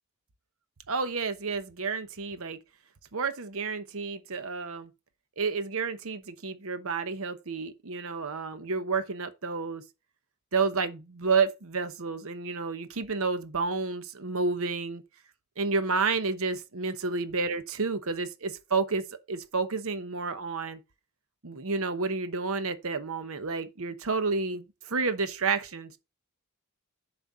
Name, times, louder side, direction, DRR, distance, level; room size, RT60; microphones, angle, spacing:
voice 1, 0.9-2.6 3.1-4.9 5.4-9.8 10.5-15.0 15.6-20.8 21.4-26.0, right 4 dB, 65° right, 1.0 m, -30 dB
7.4 x 4.4 x 5.5 m
head